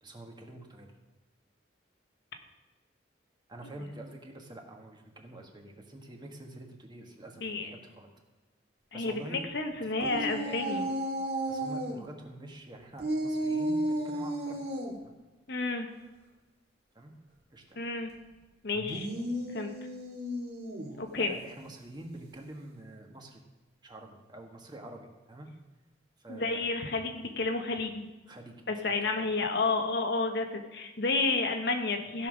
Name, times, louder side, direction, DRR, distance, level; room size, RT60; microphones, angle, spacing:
voice 1, 0.0-0.9 3.5-8.1 8.9-9.4 9.7-10.9 11.5-14.6 15.0-15.1 16.9-17.1 17.5-17.6 21.2-23.4 23.8-25.5 26.2-26.6 28.3-29.3, right 1 dB, 25° right, 2 dB, 1.6 m, -47 dB
voice 2, 8.9-10.9 15.5-15.9 17.8-18.1 18.6-19.1 19.5-19.7 21.0-21.3 26.3-28.1 28.7-32.3, left 3 dB, 60° left, 5 dB, 1.2 m, -31 dB
sound 1, 10.0-12.0 13.0-14.9 18.7-21.0, right 1 dB, 60° right, 1.9 m, -33 dB
15.5 x 5.7 x 6.3 m, 1.2 s
head